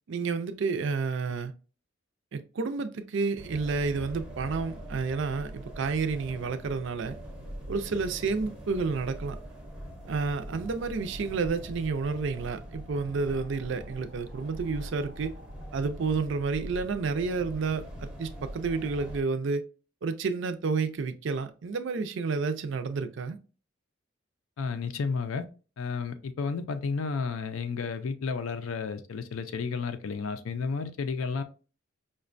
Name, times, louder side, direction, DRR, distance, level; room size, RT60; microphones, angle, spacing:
voice 1, 0.1-1.5 2.3-7.2 7.7-9.4 10.1-15.3 15.7-19.6 20.0-23.4, right 4 dB, 60° right, 0.4 m, -30 dB
sound 1, 3.4-19.2, equal, 5° right, 0.6 m, -42 dB
voice 2, 24.6-25.4 25.8-31.4, left 5 dB, 85° left, 0.4 m, -32 dB
5.1 x 2.2 x 2.5 m
head